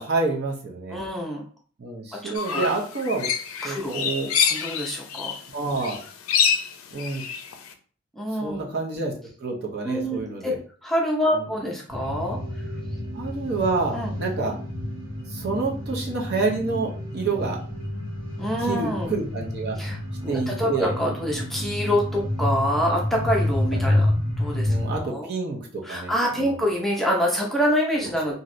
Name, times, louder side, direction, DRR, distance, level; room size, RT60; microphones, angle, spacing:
voice 1, 0.0-1.0 1.8-3.3 3.6-4.3 5.5-6.0 6.9-7.2 8.4-9.1 9.4-10.6 11.3-11.4 13.1-14.6 15.3-17.6 18.6-19.8 20.3-20.9 23.8-24.0 24.6-26.5, right 3 dB, 50° right, -2 dB, 0.7 m, -28 dB
voice 2, 0.9-1.4 2.2-2.6 3.6-4.1 4.4-5.3 8.1-8.7 9.8-10.5 10.8-12.4 13.9-14.1 18.4-19.1 19.8-24.1 24.4-25.3 25.8-28.3, equal, ahead, -3 dB, 0.5 m, -26 dB
sound 1, 2.3-5.5 5.7-7.7, left 7 dB, 85° left, 0.4 m, -26 dB
sound 2, 11.9-25.0, left 1 dB, 75° right, 1.3 m, -29 dB
3.0 x 2.6 x 2.6 m, 0.42 s
head